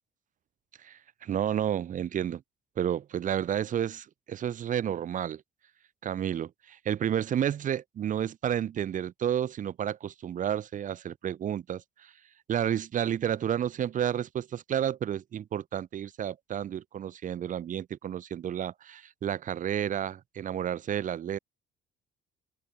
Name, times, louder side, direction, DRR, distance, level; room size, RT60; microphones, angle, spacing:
voice 1, 0.8-2.4 2.8-5.4 6.0-12.1 12.5-21.4, right 9 dB, 50° right, 1.8 m, -31 dB
open air
cardioid pair, 110°, 17 cm